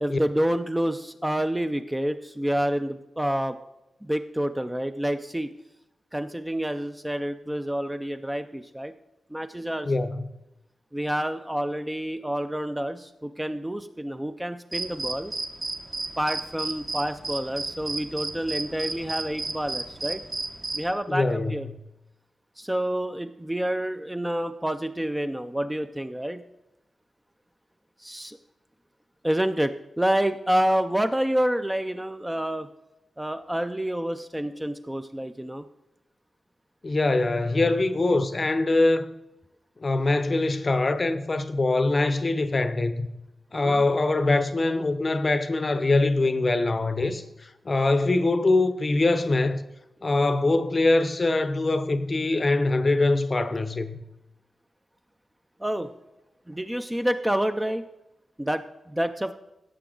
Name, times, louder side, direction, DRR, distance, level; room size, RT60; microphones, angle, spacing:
voice 1, 0.0-3.6 4.0-5.5 6.1-8.9 9.3-9.9 10.9-15.3 16.2-20.2 20.7-21.7 22.6-26.4 28.0-28.4 29.2-32.7 33.2-35.6 43.5-43.8 55.6-55.9 56.5-57.8 58.4-59.3, right 1 dB, 5° right, 0.4 m, -28 dB
voice 2, 9.8-10.2 21.1-21.6 36.8-39.1 39.8-43.1 43.5-47.2 47.6-49.6 50.0-53.9, left 2 dB, 30° left, 0.6 m, -23 dB
sound 1, 14.7-20.9, right 2 dB, 30° right, 0.8 m, -33 dB
16.5 x 6.9 x 3.8 m
wide cardioid pair, 150°, 0 cm